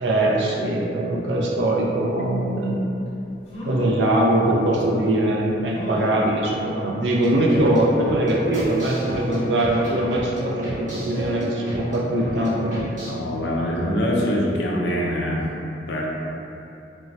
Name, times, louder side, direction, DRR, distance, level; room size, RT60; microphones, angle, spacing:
voice 1, 0.0-2.8 3.7-12.8, right 1 dB, 80° right, -3 dB, 0.4 m, -22 dB
sound 1, 3.1-3.2 3.5-4.1 4.8-4.9 5.7-6.3 7.5-8.0 8.5-8.6 8.9-9.0, equal, 40° left, 0.7 m, -35 dB
sound 2, 7.2-13.1, equal, 50° right, 1.1 m, -32 dB
voice 2, 13.1-15.4 15.9-16.1, equal, 75° left, -3 dB, 0.5 m, -24 dB
3.3 x 2.0 x 2.6 m, 2.8 s
head